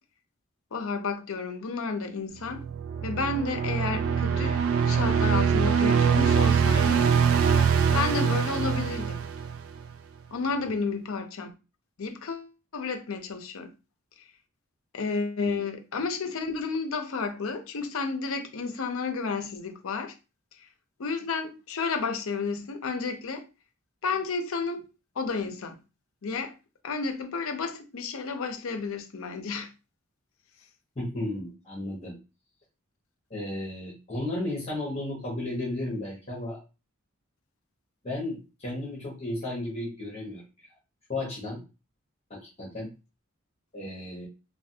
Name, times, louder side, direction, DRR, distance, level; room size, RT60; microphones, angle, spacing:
voice 1, 0.7-2.6 3.0-4.6 4.8-7.0 7.9-9.2 10.3-11.5 12.0-13.7 14.9-20.1 21.0-23.4 24.0-24.8 25.2-25.8 26.2-26.5 26.8-29.7, left 4 dB, 70° left, 0.6 m, -31 dB
sound 1, 2.5-9.9, right 7 dB, 65° right, 0.3 m, -23 dB
voice 2, 31.0-32.2 33.3-36.6 38.0-40.4 41.1-41.6 42.3-42.9 43.7-44.3, left 1 dB, 30° left, 1.0 m, -34 dB
3.2 x 2.3 x 2.7 m
head